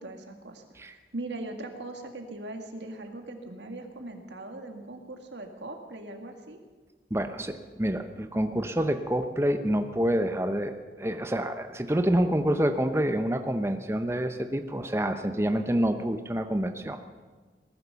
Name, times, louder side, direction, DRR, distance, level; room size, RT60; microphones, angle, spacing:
voice 1, 0.0-6.6, right 2 dB, 90° right, 4 dB, 2.0 m, -40 dB
voice 2, 7.1-17.0, right 1 dB, 15° right, 7 dB, 0.7 m, -27 dB
19.0 x 11.0 x 6.9 m, 1.3 s
head